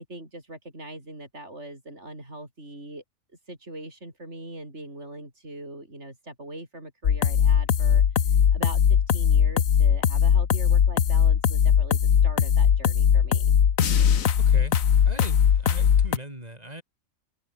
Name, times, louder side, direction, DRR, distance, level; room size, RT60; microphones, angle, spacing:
voice 1, 0.0-3.0 3.5-13.5, right 1 dB, 55° right, 8.0 m, -41 dB
sound 1, 7.0-16.2, left 8 dB, 80° left, 1.6 m, -20 dB
voice 2, 14.4-14.8 15.1-16.8, right 1 dB, 30° right, 7.0 m, -40 dB
omnidirectional pair, 1.4 m